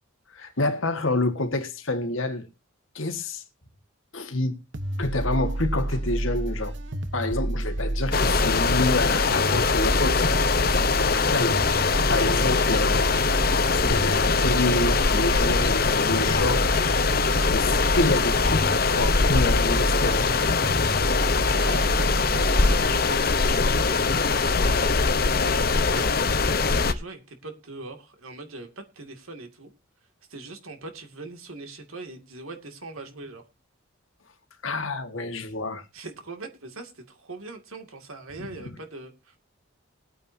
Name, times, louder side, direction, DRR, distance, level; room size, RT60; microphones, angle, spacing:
voice 1, 0.3-2.5 3.0-3.4 4.1-4.6 5.0-6.8 7.1-10.5 10.9-13.1 13.7-16.7 17.5-20.4 34.6-35.8 38.4-38.8, left 2 dB, 75° left, 1.8 m, -28 dB
sound 1, 4.7-23.0, right 1 dB, 60° right, 1.1 m, -29 dB
sound 2, 8.1-26.9, left 4 dB, 45° left, 0.9 m, -22 dB
voice 2, 21.4-22.4 22.7-26.2 26.6-29.7 30.3-33.4 35.9-39.4, right 2 dB, 90° right, 2.3 m, -41 dB
21.0 x 8.9 x 2.8 m
head